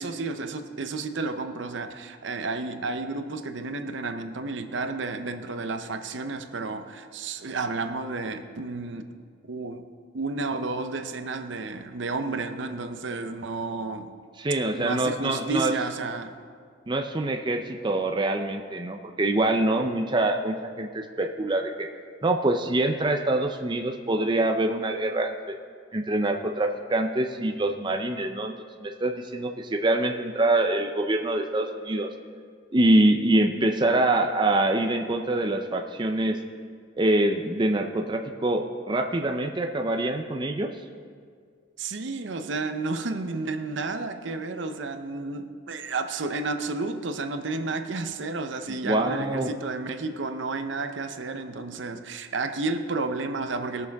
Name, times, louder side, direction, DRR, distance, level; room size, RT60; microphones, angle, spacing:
voice 1, 0.0-9.1 9.5-9.9 10.1-14.1 14.7-16.3 41.8-53.9, right 3 dB, 65° right, 8 dB, 0.7 m, -31 dB
voice 2, 14.4-15.7 16.9-21.9 22.2-25.5 25.9-28.5 28.8-32.1 32.7-36.4 37.0-40.7 48.8-49.5, right 1 dB, 25° right, 4 dB, 0.5 m, -25 dB
20.5 x 6.9 x 3.5 m, 2.1 s
head